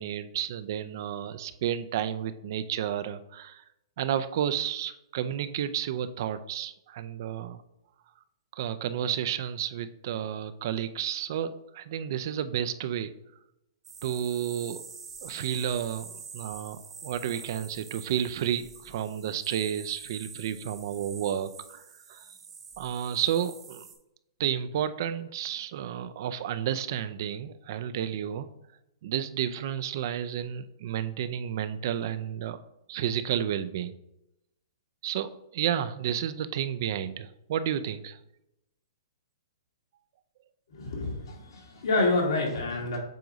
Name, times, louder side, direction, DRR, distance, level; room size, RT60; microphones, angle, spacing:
voice 1, 0.0-3.6 4.0-7.6 8.5-13.1 14.0-14.8 15.2-21.8 22.1-22.3 22.8-23.9 24.4-28.5 29.0-32.6 32.9-33.9 35.0-38.2, right 9 dB, 50° right, 13 dB, 0.4 m, -31 dB
sound 1, 13.8-23.9, right 5 dB, 15° right, 1.0 m, -46 dB
voice 2, 40.7-43.0, left 2 dB, 75° left, -1 dB, 2.2 m, -28 dB
7.6 x 2.6 x 5.0 m, 0.85 s
hypercardioid pair, 155°, 3 cm